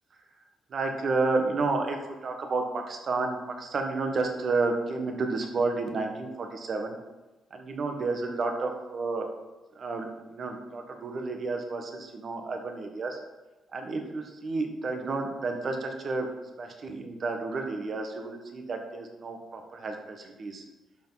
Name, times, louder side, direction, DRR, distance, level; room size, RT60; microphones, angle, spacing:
voice 1, 0.7-6.9 7.5-9.3 9.7-13.2 13.7-16.3 16.6-20.6, right 3 dB, 50° right, 4 dB, 1.4 m, -31 dB
11.5 x 4.8 x 4.0 m, 1.1 s
cardioid pair, 90°, 0 cm